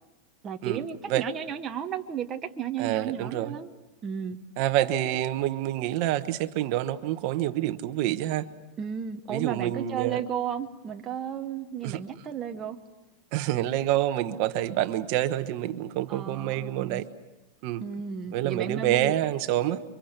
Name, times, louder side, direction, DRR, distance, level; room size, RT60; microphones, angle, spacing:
voice 1, 0.4-3.7 4.0-4.4 8.8-12.8 16.1-17.0 17.8-19.1, right 8 dB, 20° right, 4 dB, 1.1 m, -33 dB
voice 2, 2.8-3.6 4.6-8.5 9.3-10.2 11.8-12.0 13.3-17.1 17.6-17.8 18.3-19.8, right 13 dB, 50° right, 9 dB, 1.1 m, -27 dB
30.0 x 24.5 x 6.7 m, 1.0 s
supercardioid pair, 155°, 0 cm